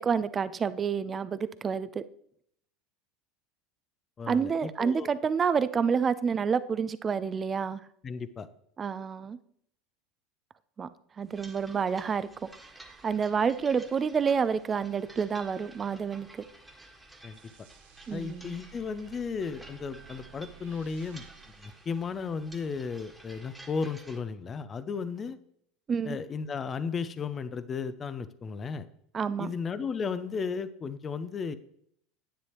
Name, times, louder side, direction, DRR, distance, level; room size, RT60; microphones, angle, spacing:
voice 1, 0.0-2.0 4.3-7.8 8.8-9.4 10.8-10.9 11.2-12.5 13.0-16.4 18.1-18.5 25.9-26.2 29.1-29.5, right 6 dB, 30° right, 15 dB, 0.6 m, -28 dB
voice 2, 4.2-5.1 8.0-8.5 17.2-17.4 18.1-21.3 21.6-25.4 26.0-28.9 29.4-31.6, left 5 dB, 30° left, 14 dB, 0.7 m, -34 dB
sound 1, 11.3-24.2, right 2 dB, 5° right, 1.7 m, -53 dB
sound 2, 17.3-22.7, right 12 dB, 70° right, 0.9 m, -55 dB
10.5 x 9.5 x 3.1 m, 0.68 s
hypercardioid pair, 80°, 0 cm